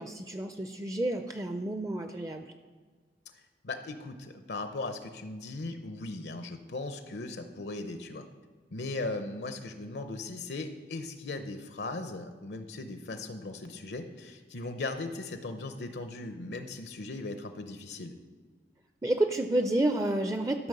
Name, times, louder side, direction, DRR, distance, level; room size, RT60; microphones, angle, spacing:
voice 1, 0.0-2.5 19.0-20.7, right 1 dB, 20° right, 7 dB, 0.4 m, -30 dB
voice 2, 3.6-8.3 8.7-18.2, left 2 dB, 75° left, 8 dB, 0.7 m, -38 dB
13.0 x 5.4 x 6.6 m, 1.5 s
head